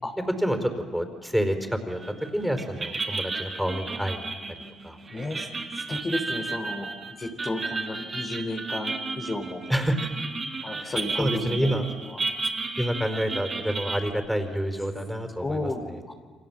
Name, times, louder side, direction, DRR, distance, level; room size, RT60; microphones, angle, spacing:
voice 1, 0.4-2.0 2.3-4.3 4.8-5.0 9.7-10.1 10.8-11.9 12.8-16.0, equal, ahead, 5 dB, 4.9 m, -28 dB
sound 1, 2.0-2.3 2.6-14.1, right 3 dB, 35° right, 4.0 m, -33 dB
voice 2, 5.1-5.5 5.7-6.9 7.2-9.6 10.6-11.8 12.1-12.2 15.4-15.8 16.1-16.2, left 2 dB, 35° left, 3 dB, 3.3 m, -32 dB
29.5 x 25.0 x 7.6 m, 1.5 s
supercardioid pair, 60°, 0 cm